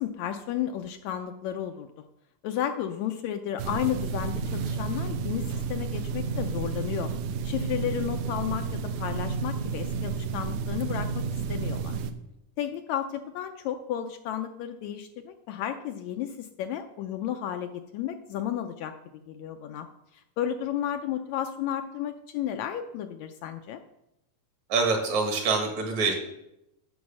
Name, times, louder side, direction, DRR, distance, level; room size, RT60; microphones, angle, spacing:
voice 1, 0.0-1.9 2.4-7.1 7.4-11.2 11.5-12.0 12.6-19.9 20.1-23.8, left 10 dB, 75° left, 7 dB, 1.8 m, -33 dB
sound 1, 3.6-12.1, right 5 dB, 80° right, 2.2 m, -31 dB
voice 2, 24.7-26.1, right 4 dB, 65° right, 3 dB, 3.1 m, -25 dB
9.5 x 6.2 x 7.4 m, 0.84 s
omnidirectional pair, 3.6 m